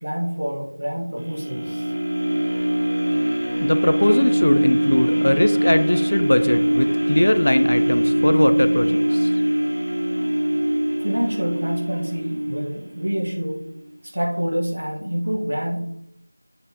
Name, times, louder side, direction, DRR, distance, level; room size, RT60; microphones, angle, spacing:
voice 1, 0.0-1.9 11.0-13.7 14.0-15.8, equal, 50° right, 0 dB, 1.5 m, -27 dB
sound 1, 1.2-13.3 13.8-13.9, right 1 dB, 80° right, 3.3 m, -22 dB
voice 2, 3.6-9.3, left 1 dB, 40° left, 10 dB, 0.4 m, -20 dB
7.8 x 7.4 x 3.0 m, 0.81 s
figure-of-eight pair, 175°, 0 cm